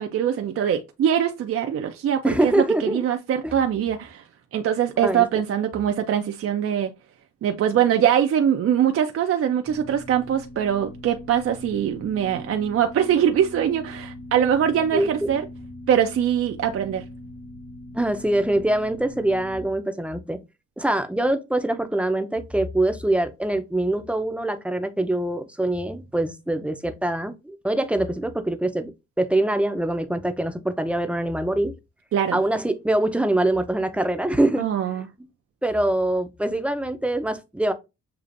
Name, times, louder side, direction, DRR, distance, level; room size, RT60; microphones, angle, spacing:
voice 1, 0.0-2.6 2.9-4.2 4.5-6.9 7.4-15.4 15.9-17.0 32.1-32.4 34.6-35.1, right 9 dB, 50° right, 0.5 m, -22 dB
voice 2, 2.2-3.0 3.4-3.5 5.0-5.2 14.9-15.4 17.9-20.4 20.8-28.9 29.2-31.7 32.3-34.7 35.6-37.7, right 1 dB, 5° right, 0.6 m, -24 dB
sound 1, 9.6-19.7, left 1 dB, 75° left, 1.9 m, -41 dB
6.7 x 2.5 x 2.5 m
cardioid pair, 90°, 30 cm